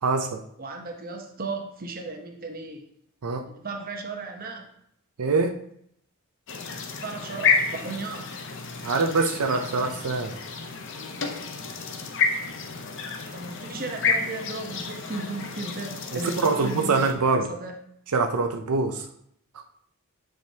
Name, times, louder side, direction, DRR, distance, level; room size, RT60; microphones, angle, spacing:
voice 1, 0.0-0.4 3.2-3.5 5.2-5.6 8.8-10.4 16.1-17.5 18.1-19.1 19.5-19.6, right 4 dB, 85° right, 5 dB, 0.6 m, -24 dB
voice 2, 0.6-2.8 3.6-4.7 7.0-8.4 13.3-17.7, right 3 dB, 40° right, 3 dB, 0.9 m, -35 dB
sound 1, 6.5-17.1, left 5 dB, 55° left, 0.8 m, -30 dB
9.3 x 5.0 x 2.8 m, 0.70 s
head